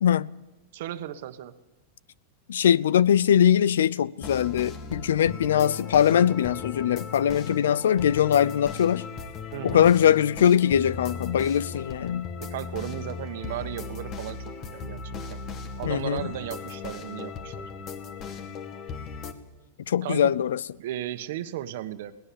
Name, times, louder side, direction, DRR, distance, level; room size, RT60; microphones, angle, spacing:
voice 1, 0.7-1.5 9.5-9.9 12.1-15.4 15.8-17.7 20.0-20.3 20.8-22.2, right 12 dB, 70° right, 1.4 m, -35 dB
voice 2, 2.5-9.1 9.6-12.3 15.9-16.2 19.9-20.6, left 9 dB, 85° left, 0.6 m, -21 dB
sound 1, 4.2-19.3, left 5 dB, 40° left, 2.1 m, -37 dB
21.5 x 18.5 x 7.1 m
hypercardioid pair, 125°, 0 cm